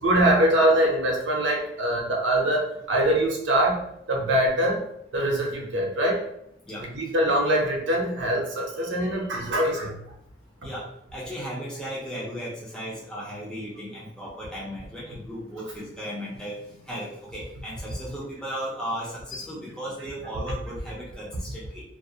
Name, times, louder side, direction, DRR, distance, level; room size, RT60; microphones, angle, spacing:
voice 1, 0.0-3.8 4.1-4.8 5.1-6.2 6.8-10.0, right 1 dB, 70° right, 0 dB, 0.6 m, -23 dB
voice 2, 10.6-21.8, equal, 5° left, -7 dB, 0.5 m, -36 dB
2.3 x 2.0 x 2.6 m, 0.76 s
head